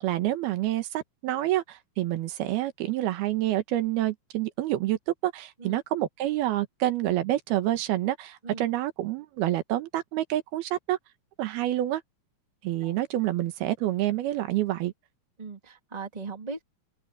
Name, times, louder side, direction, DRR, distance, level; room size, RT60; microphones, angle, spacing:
voice 1, 0.0-11.0 11.4-12.0 12.6-14.9, right 14 dB, 90° right, 3.3 m, -28 dB
voice 2, 15.4-16.6, right 4 dB, 15° right, 2.1 m, -39 dB
omnidirectional pair, 4.3 m